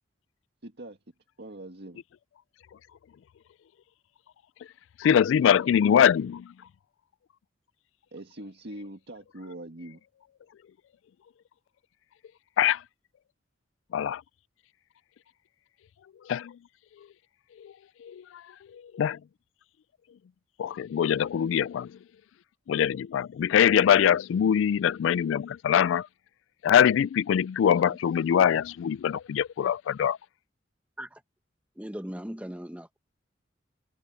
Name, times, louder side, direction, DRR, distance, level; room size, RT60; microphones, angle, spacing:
voice 1, 0.6-1.0 1.4-2.0 8.1-10.0, right 1 dB, 60° right, 1.9 m, -42 dB
voice 2, 5.0-6.5 12.6-12.8 13.9-14.2 16.3-16.6 17.6-17.7 18.0-18.4 18.7-19.2 20.6-22.0 22.7-26.1 26.6-30.2, left 9 dB, 80° left, 0.3 m, -23 dB
voice 3, 31.8-33.0, equal, 5° right, 1.2 m, -39 dB
head